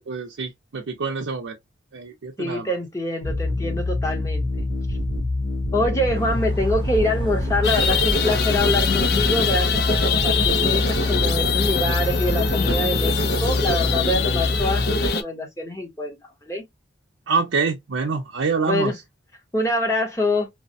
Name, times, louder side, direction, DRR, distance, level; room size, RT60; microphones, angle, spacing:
voice 1, 0.1-1.6 1.9-2.8 17.3-18.9, right 4 dB, 80° right, 0.5 m, -26 dB
voice 2, 2.4-4.5 5.7-16.2 16.4-16.6 18.6-18.9 19.5-20.5, left 1 dB, 15° left, 0.9 m, -25 dB
sound 1, 3.2-15.1, left 2 dB, 85° left, 1.1 m, -25 dB
sound 2, 6.1-14.0, right 1 dB, 25° right, 0.7 m, -38 dB
sound 3, 7.6-15.2, left 5 dB, 55° left, 0.5 m, -23 dB
3.1 x 2.1 x 2.5 m
head